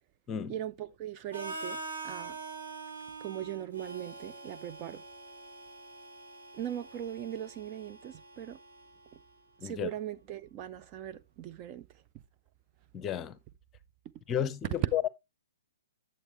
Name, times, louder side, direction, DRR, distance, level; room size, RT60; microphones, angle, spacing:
voice 1, 0.5-1.8 2.0-2.4 3.2-5.0 6.5-8.6 9.1-9.2 9.6-11.9 14.8-14.9, right 12 dB, 30° right, 0.4 m, -39 dB
Harmonica, 1.3-9.2, right 3 dB, 65° right, 2.6 m, -44 dB
voice 2, 12.9-13.4 14.3-14.7 14.9-15.1, left 9 dB, 20° left, 0.7 m, -32 dB
8.8 x 7.6 x 3.1 m
figure-of-eight pair, 120°, 0 cm